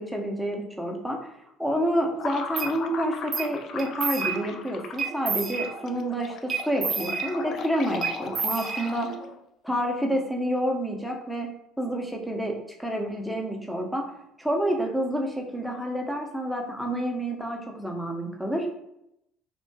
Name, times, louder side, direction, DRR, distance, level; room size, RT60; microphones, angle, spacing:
voice 1, 0.0-1.3 1.6-9.1 9.6-11.5 11.8-14.1 14.4-18.7, equal, ahead, 1 dB, 0.6 m, -29 dB
sound 1, 2.2-9.4, left 5 dB, 55° left, 0.3 m, -38 dB
sound 2, 2.6-2.7 3.3-3.5 3.8-4.6 5.0-6.0 6.5-7.6 8.0-9.3, right 5 dB, 50° right, 0.4 m, -30 dB
2.6 x 2.2 x 2.7 m, 0.80 s
hypercardioid pair, 65°, 0 cm